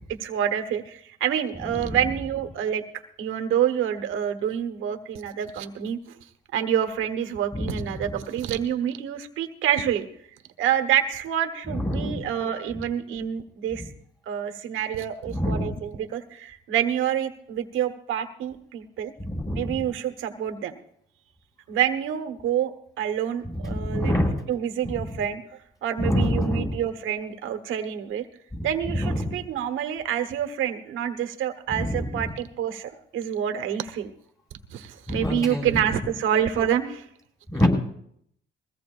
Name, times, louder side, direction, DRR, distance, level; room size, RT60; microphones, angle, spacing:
voice 1, 0.2-2.8 3.2-6.0 6.5-10.1 10.6-13.8 14.3-19.1 19.5-20.7 21.7-24.1 24.5-25.4 25.8-28.3 28.6-34.1 34.7-37.0, right 9 dB, 85° right, 7 dB, 1.4 m, -27 dB
voice 2, 1.6-2.1 7.5-8.1 11.6-12.2 15.3-15.7 19.2-19.8 23.5-24.4 24.8-25.0 26.0-26.8 28.5-29.4 31.7-32.3 35.1-35.7 37.5-37.7, left 1 dB, 20° left, 0 dB, 6.2 m, -27 dB
21.5 x 16.5 x 2.6 m, 0.68 s
cardioid pair, 90°, 20 cm